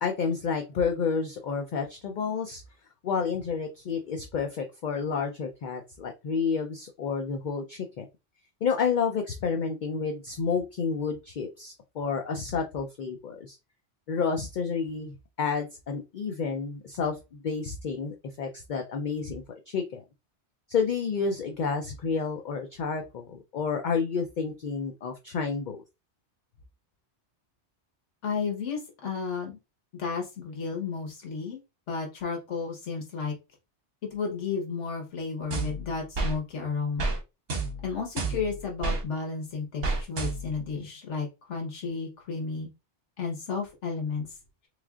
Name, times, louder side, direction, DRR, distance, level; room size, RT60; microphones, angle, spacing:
voice 1, 0.0-2.6 3.0-8.1 8.6-13.6 14.1-20.0 20.7-25.8, left 5 dB, 55° left, 4 dB, 0.6 m, -30 dB
voice 2, 28.2-29.6 29.9-31.6 31.9-33.3 34.1-37.0 37.8-42.7 43.2-44.3, left 5 dB, 85° left, 2 dB, 1.3 m, -32 dB
sound 1, 35.5-36.4 37.0-37.2 37.5-39.0 39.8-40.6, right 3 dB, 60° right, 1.1 m, -30 dB
3.6 x 3.2 x 2.3 m, 0.25 s
omnidirectional pair, 1.2 m